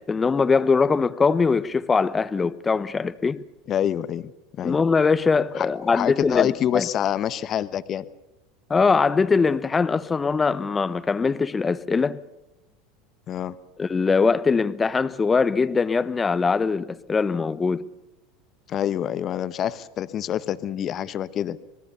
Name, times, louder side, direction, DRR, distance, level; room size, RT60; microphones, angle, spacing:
voice 1, 0.0-3.4 4.6-6.5 6.7-6.9 8.7-12.2 13.8-17.8, left 4 dB, 20° left, 1.0 m, -22 dB
voice 2, 3.7-4.3 4.6-4.8 5.6-8.0 13.3-13.6 18.7-21.6, left 10 dB, 40° left, 1.1 m, -26 dB
26.5 x 20.0 x 6.9 m
hypercardioid pair, 85°, 0 cm